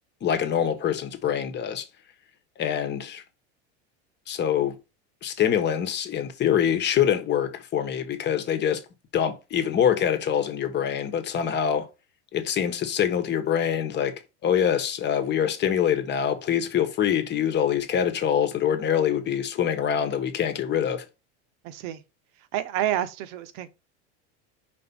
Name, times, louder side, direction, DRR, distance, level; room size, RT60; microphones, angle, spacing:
voice 1, 0.2-1.9 2.6-3.2 4.3-4.8 5.2-8.8 9.1-11.9 12.3-21.0, left 9 dB, 30° left, 1.2 m, -25 dB
voice 2, 21.6-22.0 22.5-23.7, right 12 dB, 60° right, 1.1 m, -29 dB
5.3 x 4.2 x 5.3 m
supercardioid pair, 135°, 34 cm